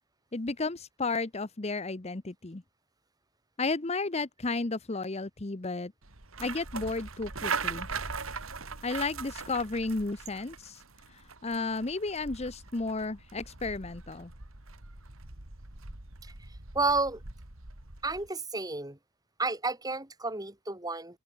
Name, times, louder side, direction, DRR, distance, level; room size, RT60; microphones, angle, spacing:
voice 1, 0.3-2.6 3.6-5.9 6.4-7.9 8.8-10.8 11.4-14.3, left 3 dB, 30° left, 0.9 m, -33 dB
sound 1, 6.0-18.3, right 5 dB, 85° right, 3.0 m, -40 dB
voice 2, 16.7-17.2 18.0-19.0 19.4-21.2, right 3 dB, 20° right, 3.4 m, -31 dB
open air
head